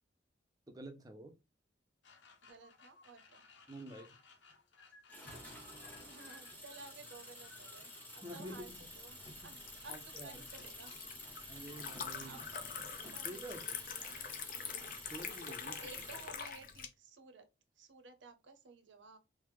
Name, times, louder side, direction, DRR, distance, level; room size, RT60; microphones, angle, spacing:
voice 1, 0.7-1.4 3.7-4.2 8.2-8.8 9.9-10.4 11.5-12.4 12.8-12.9 13.2-13.8 15.1-15.8, right 1 dB, 20° right, 0.5 m, -48 dB
sound 1, 2.0-13.2, left 4 dB, 85° left, 0.7 m, -62 dB
voice 2, 2.4-3.4 6.0-9.2 9.4-11.0 12.2-12.4 13.1-13.7 14.0-14.2 15.8-17.4 17.8-19.2, right 4 dB, 85° right, 0.6 m, -55 dB
sound 2, 5.1-16.4, equal, 10° left, 1.0 m, -51 dB
Liquid, 8.5-16.9, left 7 dB, 50° left, 0.4 m, -45 dB
3.3 x 2.0 x 3.1 m
head